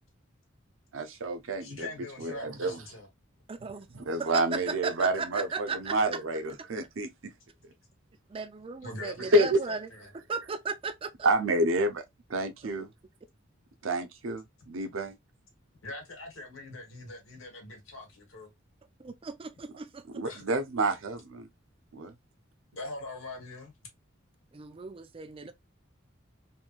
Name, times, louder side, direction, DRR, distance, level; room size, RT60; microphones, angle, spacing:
voice 1, 0.9-1.9 2.2-2.8 3.9-7.1 9.3-9.6 11.2-12.0 12.3-12.9 13.8-15.2 20.1-21.5 21.9-22.1, right 1 dB, 75° right, 0.6 m, -28 dB
voice 2, 1.6-3.1 8.8-10.1 15.8-18.5 20.2-20.5 22.8-23.7, left 2 dB, 90° left, 1.2 m, -42 dB
voice 3, 3.5-3.9 4.2-6.2 8.3-11.3 12.8-12.9 19.0-20.2 24.5-25.5, right 4 dB, 25° right, 0.3 m, -36 dB
3.0 x 2.6 x 2.3 m
head